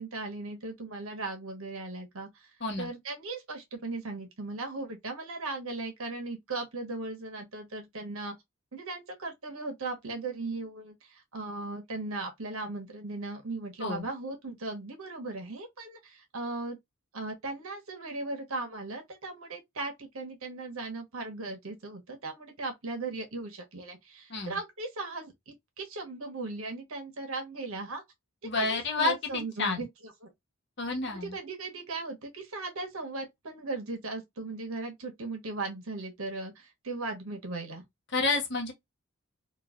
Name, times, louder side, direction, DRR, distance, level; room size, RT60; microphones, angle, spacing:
voice 1, 0.0-2.5 2.8-8.4 8.7-16.8 17.1-28.0 28.4-29.9 30.2-30.3 31.1-37.8, right 3 dB, 80° right, 1.2 m, -37 dB
voice 2, 28.4-29.8 30.8-31.4 38.1-38.7, left 3 dB, 55° left, 1.1 m, -30 dB
3.1 x 2.4 x 2.4 m
head